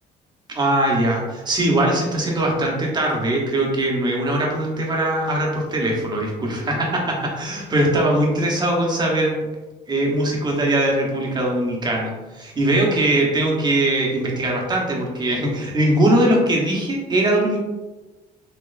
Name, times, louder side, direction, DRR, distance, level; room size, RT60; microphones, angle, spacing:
voice 1, 0.5-9.4 9.9-17.6, right 1 dB, 25° right, -1 dB, 1.0 m, -21 dB
4.2 x 2.8 x 2.5 m, 1.2 s
cardioid pair, 110°, 17 cm